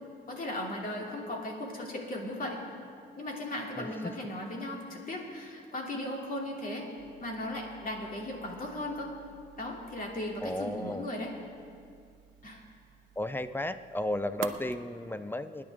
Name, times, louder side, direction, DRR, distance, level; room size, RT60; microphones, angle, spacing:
voice 1, 0.3-2.6 3.2-6.9 7.2-9.1 9.6-11.3 12.4-12.6, left 1 dB, 45° left, -1 dB, 2.8 m, -37 dB
voice 2, 3.8-4.3 10.4-11.1 13.2-15.6, left 1 dB, 10° left, 11 dB, 0.5 m, -34 dB
sound 1, 7.0-14.8, right 9 dB, 75° right, 0.8 m, -49 dB
23.0 x 10.5 x 3.6 m, 2.4 s
cardioid pair, 90°, 20 cm